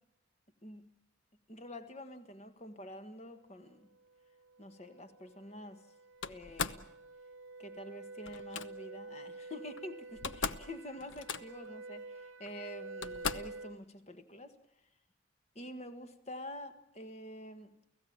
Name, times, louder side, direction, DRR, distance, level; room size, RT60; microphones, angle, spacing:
voice 1, 1.5-3.9 4.6-5.9 6.2-6.9 7.6-14.5 15.5-17.7, left 1 dB, 35° left, 1.6 m, -47 dB
sound 1, 3.9-13.8, right 3 dB, 70° right, 1.0 m, -49 dB
Slam, 6.2-6.9 8.3-8.7 9.8-9.9 10.1-10.7 11.0-11.7 12.5-12.6 13.0-13.6, left 6 dB, 70° left, 0.9 m, -38 dB
29.5 x 16.5 x 8.8 m
head